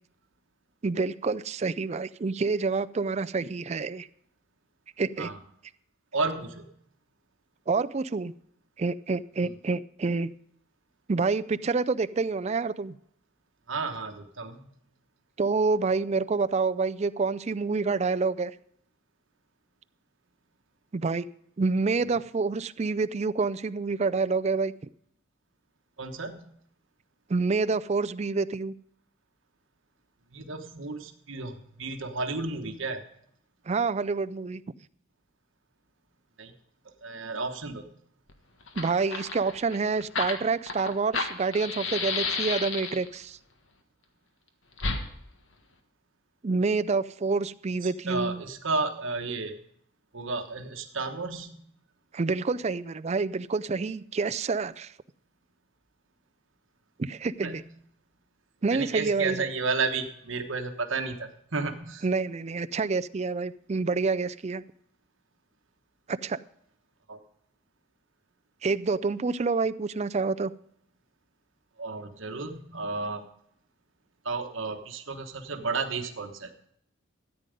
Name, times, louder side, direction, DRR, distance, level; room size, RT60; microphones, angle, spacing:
voice 1, 0.8-4.1 5.0-5.3 7.7-8.3 8.8-10.3 11.1-13.0 15.4-18.5 20.9-21.2 21.6-24.7 27.3-28.7 33.7-34.6 38.8-43.4 46.4-48.4 52.1-54.9 57.0-57.6 58.6-59.4 62.0-64.6 66.1-66.4 68.6-70.5, right 4 dB, 35° right, 13 dB, 0.4 m, -27 dB
voice 2, 6.1-6.6 9.4-9.5 13.7-14.7 26.0-26.4 30.3-33.0 36.4-36.5 37.0-37.8 47.8-49.5 50.1-51.6 57.4-57.6 58.7-62.0 67.1-67.2 71.8-73.2 74.2-76.5, right 4 dB, 70° right, 5 dB, 1.3 m, -32 dB
Fire, 38.3-38.4 38.6-43.2 44.8-45.0, left 4 dB, 70° left, 1.6 m, -31 dB
13.5 x 9.2 x 5.2 m, 0.70 s
head